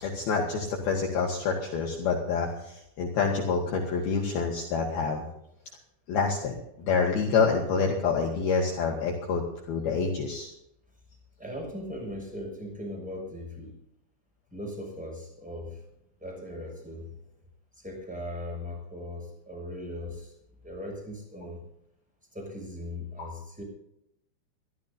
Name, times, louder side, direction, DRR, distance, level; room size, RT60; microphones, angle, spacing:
voice 1, 0.0-5.3 6.1-10.5 23.2-23.3, left 5 dB, 60° left, 0 dB, 2.9 m, -27 dB
voice 2, 11.4-13.7 14.5-15.8 16.2-17.2 17.8-20.3 20.6-21.6 22.3-23.6, left 1 dB, ahead, 0 dB, 6.0 m, -39 dB
24.0 x 14.5 x 2.7 m, 0.79 s
omnidirectional pair, 5.8 m